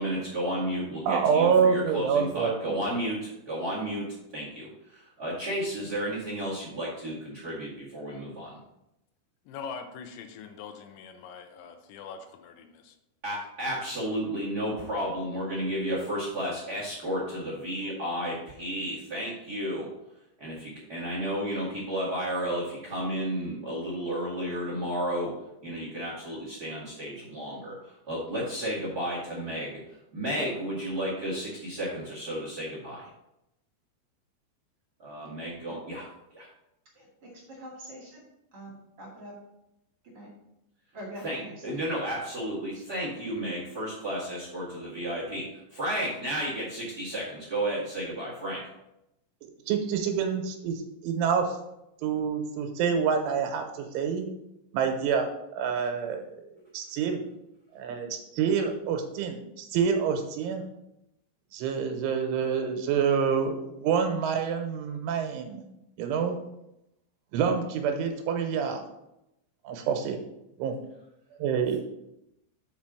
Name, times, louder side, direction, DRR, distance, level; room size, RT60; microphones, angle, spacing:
voice 1, 0.0-8.6 13.2-19.9 20.4-25.3 25.6-33.1 35.0-36.1 36.3-36.5 41.2-48.7, equal, 65° right, -7 dB, 0.9 m, -32 dB
voice 2, 1.1-2.8 49.4-51.6 52.0-54.3 54.7-56.4 56.7-57.2 57.8-60.6 61.5-65.6 66.0-66.4 67.3-68.8 69.7-70.2 70.6-70.8 71.4-71.8, right 6 dB, 90° right, 5 dB, 3.5 m, -27 dB
voice 3, 9.5-13.0, left 6 dB, 80° left, 7 dB, 3.1 m, -43 dB
voice 4, 36.9-38.2 38.5-39.3 40.1-40.3 40.9-41.8 42.7-42.8, equal, 45° right, -3 dB, 2.0 m, -44 dB
7.1 x 5.2 x 6.2 m, 0.86 s
omnidirectional pair, 5.4 m